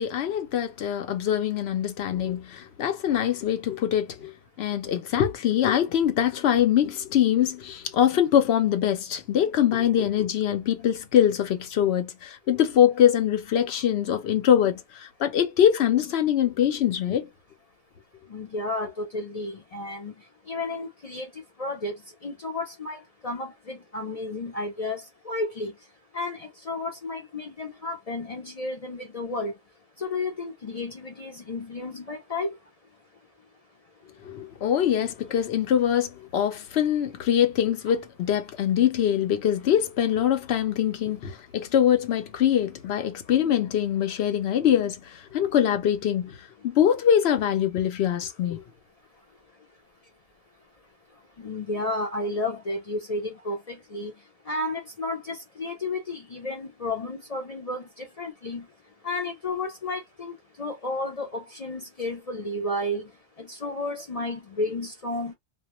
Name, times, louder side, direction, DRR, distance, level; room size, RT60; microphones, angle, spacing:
voice 1, 0.0-4.3 4.6-17.3 34.2-46.4 46.6-48.6, left 10 dB, 70° left, 0.8 m, -23 dB
voice 2, 18.3-29.6 30.0-32.7 34.0-34.1 49.1-49.7 51.1-65.3, left 2 dB, 45° left, 0.6 m, -33 dB
2.2 x 2.1 x 2.9 m
omnidirectional pair, 1.1 m